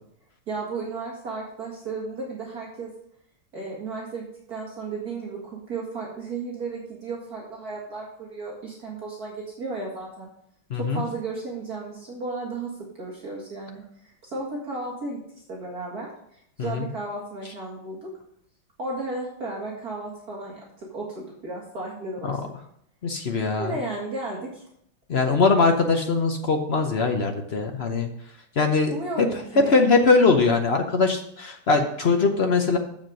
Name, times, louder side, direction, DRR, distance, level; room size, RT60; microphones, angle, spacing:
voice 1, 0.5-2.9 3.5-10.3 10.7-12.7 13.0-15.2 15.5-18.1 18.8-22.4 23.6-24.6 28.9-29.8, right 3 dB, 45° right, -3 dB, 2.3 m, -34 dB
voice 2, 10.7-11.0 16.6-16.9 22.3-22.4 23.0-23.7 25.1-28.1 28.6-28.9 29.6-32.8, left 4 dB, 60° left, 4 dB, 0.6 m, -21 dB
7.6 x 7.3 x 6.4 m, 0.71 s
omnidirectional pair, 2.3 m